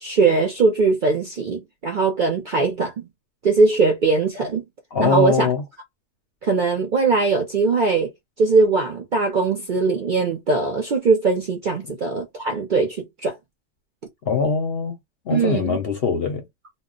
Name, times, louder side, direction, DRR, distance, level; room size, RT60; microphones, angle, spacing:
voice 1, 0.0-3.0 3.4-4.6 5.0-5.5 6.4-8.1 8.4-13.4 15.3-15.8, right 4 dB, 55° right, 0.5 m, -20 dB
voice 2, 4.9-5.6 14.3-15.0 15.3-16.5, left 5 dB, 55° left, 0.7 m, -22 dB
2.3 x 2.1 x 3.7 m
omnidirectional pair, 1.4 m